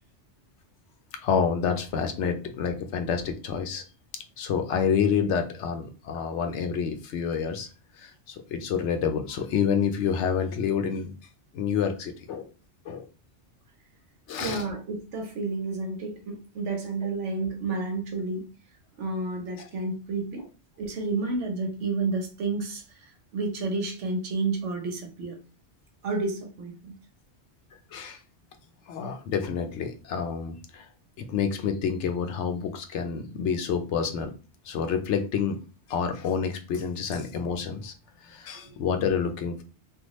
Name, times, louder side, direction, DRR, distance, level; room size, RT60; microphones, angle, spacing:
voice 1, 1.2-3.8 4.4-7.7 8.0-11.1 11.5-12.5 12.9-13.0 14.3-14.6 19.6-19.7 27.9-28.2 28.9-30.9 31.2-34.3 34.6-35.6 35.9-37.9 38.2-39.6, left 7 dB, 80° left, 6 dB, 0.9 m, -28 dB
voice 2, 14.4-18.4 19.0-20.4 20.8-25.4 26.0-26.9 37.1-37.2 38.6-38.7, right 3 dB, 85° right, 3 dB, 1.2 m, -31 dB
3.4 x 2.3 x 3.0 m, 0.34 s
omnidirectional pair, 1.2 m